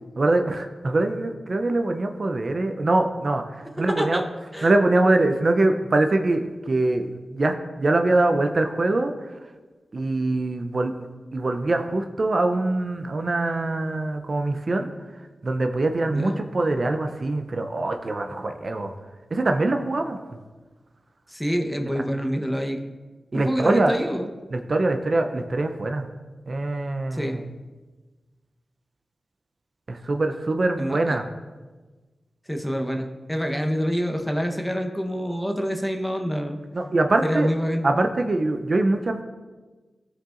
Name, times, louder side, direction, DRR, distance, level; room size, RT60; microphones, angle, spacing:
voice 1, 0.2-4.2 4.6-9.3 9.9-10.9 11.3-14.9 15.4-18.9 19.3-20.2 23.3-24.0 24.5-26.1 26.5-27.4 29.9-31.3 36.7-37.5 37.8-39.2, right 2 dB, 55° right, 6 dB, 0.6 m, -23 dB
voice 2, 3.8-4.2 4.5-4.7 16.1-16.4 21.3-22.8 23.3-24.3 27.1-27.4 30.8-31.2 32.5-36.6 37.2-37.9, equal, 5° left, 3 dB, 1.0 m, -26 dB
14.0 x 4.8 x 2.5 m, 1.3 s
cardioid pair, 45°, 0 cm